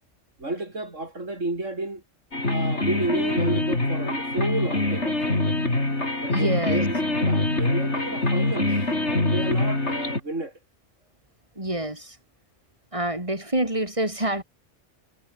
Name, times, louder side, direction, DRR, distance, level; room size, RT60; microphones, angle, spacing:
voice 1, 0.4-2.0 2.5-5.4 6.2-10.5, right 2 dB, 85° right, 5.7 m, -32 dB
sound 1, 2.3-10.2, left 2 dB, 65° left, 5.7 m, -24 dB
voice 2, 6.3-6.8 11.5-12.2 12.9-14.4, right 1 dB, 25° right, 5.0 m, -27 dB
omnidirectional pair, 1.3 m